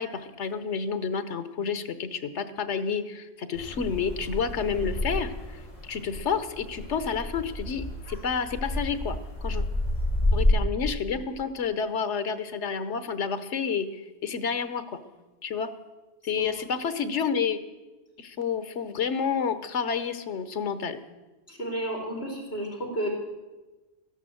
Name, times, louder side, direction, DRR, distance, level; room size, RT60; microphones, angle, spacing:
voice 1, 0.0-9.6 10.3-15.0 15.4-15.7 16.2-17.6 18.2-21.0, left 6 dB, 90° left, 12 dB, 1.2 m, -30 dB
sound 1, 3.5-10.5, left 1 dB, 30° left, 3.1 m, -30 dB
voice 2, 21.5-23.1, right 1 dB, 60° left, 1 dB, 3.6 m, -32 dB
13.5 x 10.5 x 7.7 m, 1.1 s
omnidirectional pair, 1.1 m